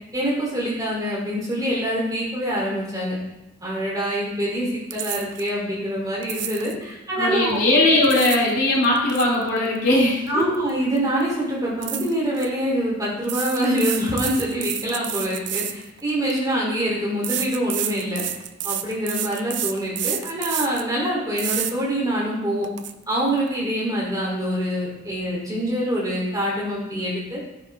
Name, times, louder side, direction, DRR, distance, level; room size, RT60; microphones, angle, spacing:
voice 1, 0.1-3.2 3.6-7.6 10.3-18.2 18.6-22.7 23.1-27.4, equal, 15° right, -5 dB, 3.9 m, -25 dB
sound 1, 4.9-5.5 6.2-6.8 7.8-8.5 8.8-10.7 11.0-11.2 11.8-12.5 13.2-16.4 17.2-20.9 21.4-21.7 22.2-22.3 22.6-22.9, right 11 dB, 55° right, 0.7 m, -29 dB
voice 2, 7.2-10.5, left 1 dB, 60° left, -5 dB, 5.2 m, -19 dB
16.0 x 9.4 x 3.8 m, 1.0 s
head